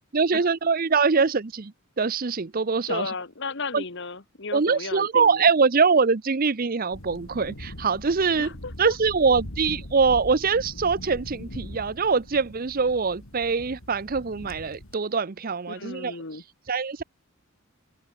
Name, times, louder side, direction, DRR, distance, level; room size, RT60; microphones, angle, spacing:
voice 1, 0.1-3.1 3.7-3.8 4.5-8.5 8.8-16.1 16.7-17.0, right 5 dB, 45° right, 0.7 m, -23 dB
voice 2, 2.9-5.4 8.4-9.0 15.7-16.4, left 3 dB, 55° left, 1.8 m, -34 dB
sound 1, 6.9-15.0, left 1 dB, 75° left, 3.7 m, -41 dB
open air
head